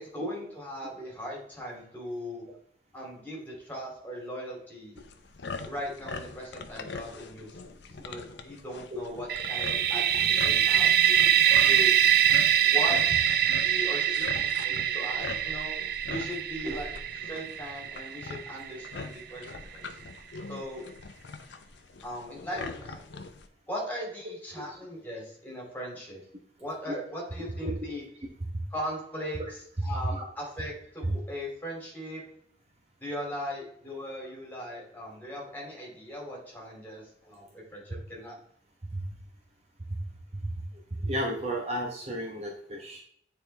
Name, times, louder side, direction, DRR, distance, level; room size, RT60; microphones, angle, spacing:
voice 1, 0.0-2.4 2.9-5.0 5.6-11.0 11.5-11.9 12.6-13.2 13.6-15.8 16.1-16.9 17.2-19.9 20.5-20.9 22.0-23.0 23.7-26.2 26.6-28.0 28.7-29.6 29.8-32.2 33.0-38.4, equal, 10° left, -3 dB, 2.7 m, -39 dB
sound 1, 5.0-23.5, left 4 dB, 65° left, 0.7 m, -42 dB
sound 2, 9.3-19.0, right 10 dB, 55° right, 0.4 m, -24 dB
sound 3, 13.4-13.6 14.2-17.5 17.9-18.6, equal, 10° right, 1.5 m, -46 dB
voice 2, 27.4-28.0 28.5-28.6 30.0-30.2 31.0-31.2 38.9-39.0 40.3-40.5 41.0-43.0, right 1 dB, 35° right, 0 dB, 1.0 m, -33 dB
9.0 x 4.4 x 3.3 m, 0.66 s
head